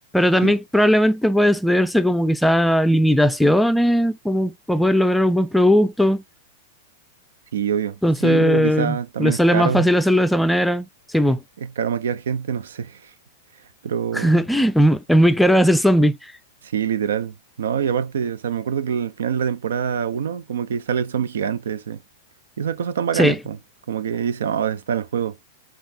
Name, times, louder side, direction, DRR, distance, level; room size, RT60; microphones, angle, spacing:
voice 1, 0.1-6.2 8.0-10.9 11.1-11.4 14.1-16.2 23.1-23.4, equal, 5° left, 0.4 m, -18 dB
voice 2, 7.5-9.9 11.6-13.1 13.8-14.4 16.6-22.0 22.6-23.6 23.9-25.4, right 8 dB, 80° right, 0.5 m, -25 dB
5.3 x 2.4 x 2.7 m
hypercardioid pair, 115°, 0 cm